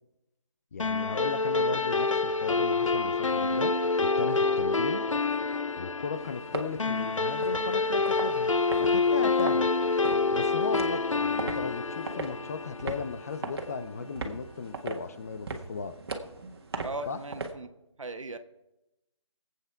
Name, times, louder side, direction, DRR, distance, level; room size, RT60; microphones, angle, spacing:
voice 1, 0.7-3.7 4.0-5.0 5.8-8.5 8.8-9.7 10.3-15.9 17.1-17.2, left 5 dB, 30° left, 12 dB, 0.6 m, -36 dB
sound 1, 0.8-13.5, left 3 dB, 90° left, 0.8 m, -27 dB
sound 2, 6.2-17.5, right 3 dB, 50° right, 1.6 m, -40 dB
voice 2, 16.8-17.7 18.0-18.4, right 2 dB, 85° right, 8 dB, 1.4 m, -37 dB
21.5 x 8.4 x 4.5 m, 0.93 s
figure-of-eight pair, 160°, 16 cm